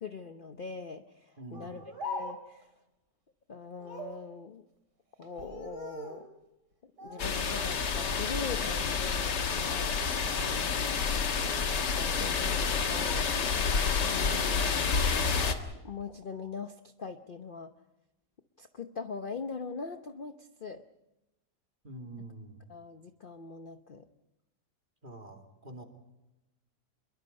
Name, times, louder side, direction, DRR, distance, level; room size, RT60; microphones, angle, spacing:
voice 1, 0.0-2.7 3.5-4.7 5.2-6.3 6.8-10.1 11.9-13.4 13.9-14.8 15.8-17.7 18.6-20.8 22.7-24.1, left 5 dB, 40° left, 8 dB, 0.8 m, -42 dB
voice 2, 1.4-1.7 10.4-10.8 21.8-22.6 25.0-25.9, right 2 dB, 30° right, 3 dB, 2.7 m, -46 dB
Speech, 1.5-2.6 3.8-4.2 5.2-6.3 7.0-7.8 8.1-8.8 9.2-9.6 10.3-10.6 11.7-12.4 12.7-13.3 13.6-14.2 14.5-15.8, equal, 90° right, 4.0 m, -43 dB
sound 1, 7.2-15.6, left 5 dB, 85° left, 2.2 m, -29 dB
26.0 x 22.5 x 5.3 m, 0.97 s
omnidirectional pair, 1.8 m